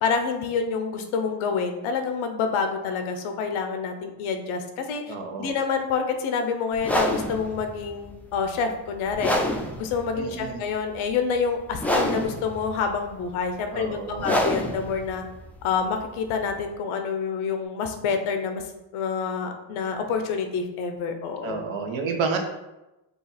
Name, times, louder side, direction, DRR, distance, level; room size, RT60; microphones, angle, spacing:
voice 1, 0.0-9.3 9.8-15.2 15.6-18.6 18.9-21.7, left 5 dB, 85° left, 6 dB, 0.8 m, -27 dB
voice 2, 5.1-5.5 10.1-10.6 13.7-14.4 21.4-22.4, right 5 dB, 70° right, 4 dB, 1.0 m, -30 dB
sound 1, 6.7-16.6, left 1 dB, 5° left, 0.4 m, -28 dB
5.3 x 2.4 x 4.1 m, 0.99 s
cardioid pair, 115°, 47 cm